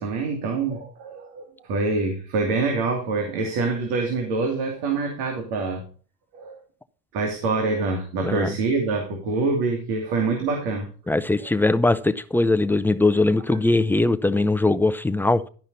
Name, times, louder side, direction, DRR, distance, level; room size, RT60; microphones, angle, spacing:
voice 1, 0.0-5.8 6.3-6.6 7.1-10.9, right 3 dB, 65° right, 2.5 m, -25 dB
voice 2, 11.1-15.5, left 2 dB, 5° left, 0.6 m, -21 dB
12.0 x 5.6 x 5.2 m
supercardioid pair, 95°, 40 cm